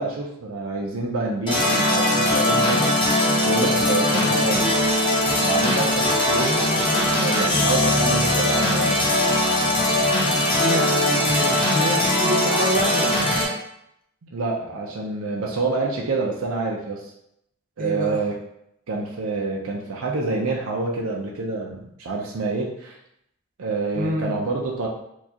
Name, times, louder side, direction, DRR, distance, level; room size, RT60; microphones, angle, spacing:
voice 1, 0.0-2.9 3.4-4.8 5.4-6.6 7.1-9.1 14.3-17.0 17.8-18.4 18.9-23.0 23.6-24.9, right 3 dB, 80° right, -1 dB, 0.6 m, -27 dB
sound 1, 1.5-13.5, left 1 dB, 25° left, 0.8 m, -20 dB
voice 2, 10.4-13.3 17.8-18.2 23.9-24.3, equal, 40° right, -2 dB, 0.8 m, -27 dB
4.5 x 2.4 x 2.8 m, 0.78 s
head